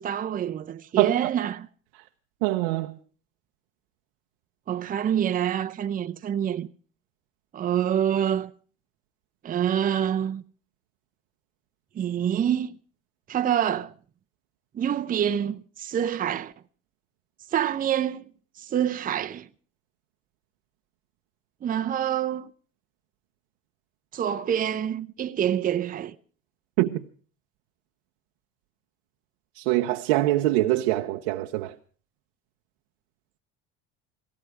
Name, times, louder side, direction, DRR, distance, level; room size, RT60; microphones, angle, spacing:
voice 1, 0.0-1.7 4.7-6.7 7.5-8.5 9.4-10.4 11.9-12.7 13.3-13.9 14.7-16.5 17.5-18.3 18.6-19.5 21.6-22.5 24.1-26.2, right 9 dB, 30° right, 0.6 m, -26 dB
voice 2, 1.0-1.3 2.4-3.0 26.8-27.0 29.5-31.8, right 17 dB, 85° right, 0.8 m, -24 dB
18.0 x 15.0 x 4.7 m
supercardioid pair, 100°, 30 cm